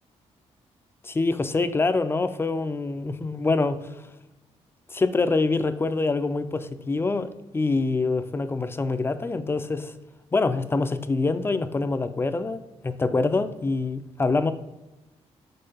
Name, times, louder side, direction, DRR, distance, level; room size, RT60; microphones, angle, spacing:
voice 1, 1.0-4.1 4.9-9.9 10.3-14.5, left 3 dB, 20° left, 10 dB, 0.5 m, -25 dB
5.7 x 3.8 x 5.3 m, 1.0 s
cardioid pair, 110°, 12 cm